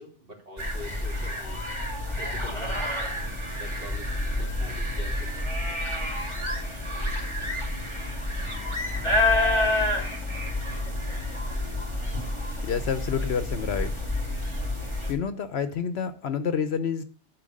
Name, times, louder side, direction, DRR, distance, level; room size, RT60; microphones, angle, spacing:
voice 1, 0.0-1.6 2.2-2.8 3.5-5.4, left 1 dB, 55° right, -2 dB, 3.2 m, -44 dB
sound 1, 0.6-15.1, left 1 dB, 25° right, 2.5 m, -29 dB
voice 2, 12.6-13.9 15.1-17.0, left 7 dB, 65° left, 11 dB, 0.9 m, -28 dB
11.0 x 4.7 x 6.4 m, 0.42 s
omnidirectional pair, 1.2 m